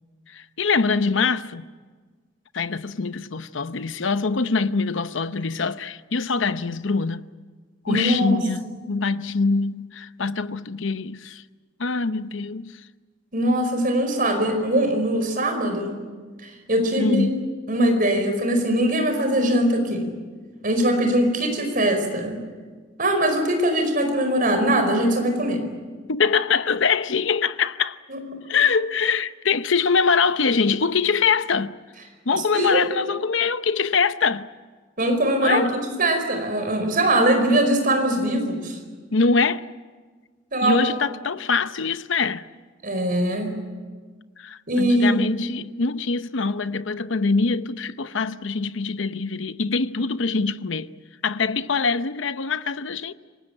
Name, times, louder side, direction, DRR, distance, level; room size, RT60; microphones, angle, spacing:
voice 1, 0.3-1.6 2.5-7.2 7.8-11.4 11.8-12.8 17.0-17.5 26.1-28.0 28.5-31.7 32.3-34.5 35.4-35.7 39.1-39.6 40.6-42.4 44.4-50.9 51.2-53.1, left 5 dB, 70° left, 0.8 m, -23 dB
voice 2, 7.9-8.4 13.3-16.0 16.4-17.3 17.7-20.1 20.6-22.4 23.0-25.6 28.1-28.2 32.5-32.8 35.0-38.8 40.5-40.8 42.8-43.5 44.7-45.2, right 1 dB, 45° right, 4.9 m, -21 dB
27.0 x 19.0 x 9.0 m
head